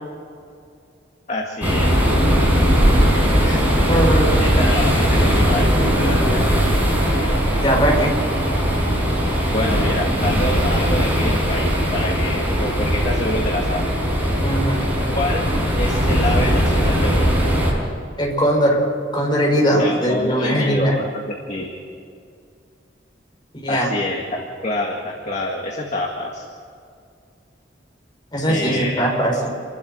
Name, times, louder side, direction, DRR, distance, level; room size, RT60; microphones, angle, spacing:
voice 1, 1.3-1.9 4.4-6.5 9.5-13.8 15.1-17.4 19.8-21.7 23.7-26.4 28.5-29.0, left 1 dB, 40° left, 0 dB, 1.9 m, -26 dB
sound 1, 1.6-17.7, equal, 10° right, 5.5 m, -19 dB
voice 2, 3.9-4.3 7.6-8.1 14.4-14.8 18.2-18.8 19.1-20.9 23.6-23.9 28.3-29.3, equal, 25° left, -2 dB, 5.4 m, -19 dB
28.0 x 12.0 x 7.8 m, 2.4 s
head